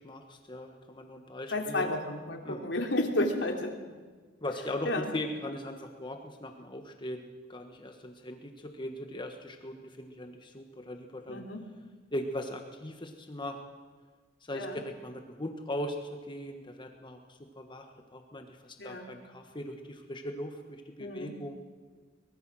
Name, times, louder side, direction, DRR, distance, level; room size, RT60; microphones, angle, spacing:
voice 1, 0.0-1.9 2.4-2.7 4.4-11.4 12.1-13.6 14.4-14.7 15.0-16.0 16.3-21.6, left 1 dB, 25° left, 4 dB, 1.4 m, -39 dB
voice 2, 1.5-3.8 4.8-5.1 11.3-11.6 14.5-14.8 18.8-19.1 21.0-21.3, left 1 dB, 70° left, 2 dB, 3.2 m, -32 dB
23.0 x 21.0 x 6.3 m, 1.4 s
head